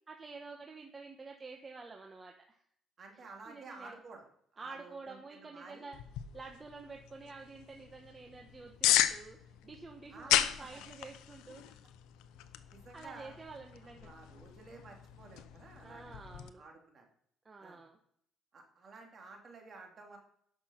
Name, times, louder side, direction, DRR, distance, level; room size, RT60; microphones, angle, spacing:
voice 1, 0.1-2.6 3.1-4.0 4.6-6.0 6.3-11.8 12.9-14.1 15.8-16.6 17.4-18.0, right 4 dB, 25° right, 3 dB, 1.1 m, -49 dB
voice 2, 3.0-4.3 4.5-5.9 10.1-10.8 12.7-13.4 14.0-17.1 17.6-17.8 18.5-20.2, right 3 dB, 45° right, 1 dB, 3.0 m, -52 dB
sound 1, 5.9-16.5, left 12 dB, 90° left, 0.6 m, -36 dB
10.5 x 6.2 x 5.7 m, 0.68 s
cardioid pair, 95°, 0 cm